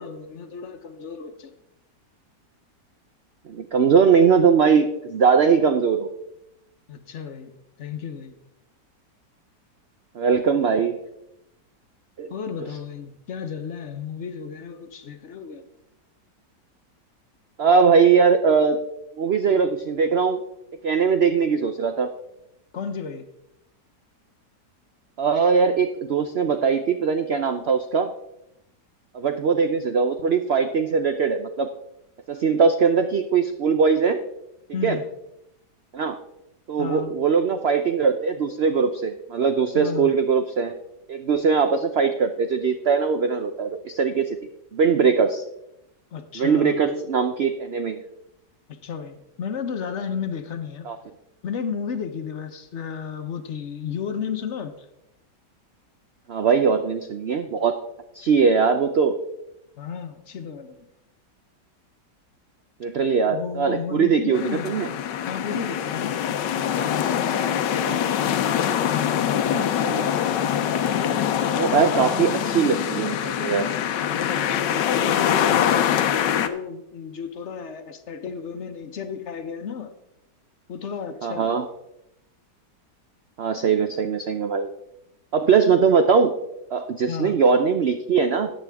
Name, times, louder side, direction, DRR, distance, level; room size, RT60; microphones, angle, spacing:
voice 1, 0.0-1.5 6.9-7.5 7.8-8.3 12.3-15.6 22.7-23.3 34.7-35.1 36.8-37.2 39.7-40.1 46.1-46.8 48.7-50.9 51.4-54.9 59.8-60.9 63.3-64.8 65.3-66.2 71.7-72.3 74.1-75.9 76.4-79.9 80.7-81.5 87.1-87.4, left 6 dB, 50° left, 8 dB, 1.0 m, -33 dB
voice 2, 3.5-6.1 10.1-11.0 12.2-12.3 17.6-18.8 19.2-20.4 20.8-22.1 25.2-28.1 29.1-31.7 32.3-34.2 34.8-35.0 35.9-36.2 36.7-40.7 41.1-44.4 44.7-45.4 46.3-48.0 50.8-51.0 56.3-57.8 58.1-59.1 62.8-64.9 67.8-68.0 69.5-70.1 71.5-73.6 81.2-81.7 83.4-84.7 85.3-86.3 86.7-88.5, right 6 dB, 80° right, 8 dB, 0.5 m, -21 dB
sound 1, 64.3-76.5, left 9 dB, 85° left, 1.4 m, -24 dB
14.0 x 9.2 x 3.5 m, 0.85 s
omnidirectional pair, 1.9 m